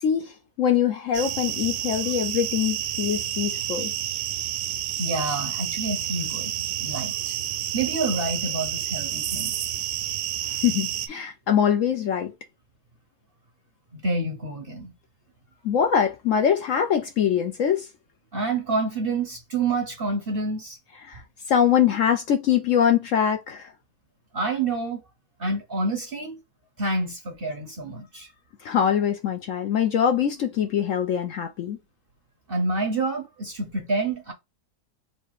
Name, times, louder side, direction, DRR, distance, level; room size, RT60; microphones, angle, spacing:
voice 1, 0.0-3.9 10.5-12.3 15.6-17.9 21.0-21.2 21.5-23.7 28.6-31.8, left 8 dB, 70° left, 0.8 m, -23 dB
sound 1, 1.1-11.1, right 11 dB, 75° right, 1.1 m, -29 dB
voice 2, 5.0-7.4 7.7-9.5 13.9-14.9 18.3-20.8 24.3-25.0 25.4-26.4 26.8-28.3 32.5-34.3, right 3 dB, 45° right, 0.8 m, -28 dB
3.4 x 2.8 x 4.6 m
omnidirectional pair, 1.7 m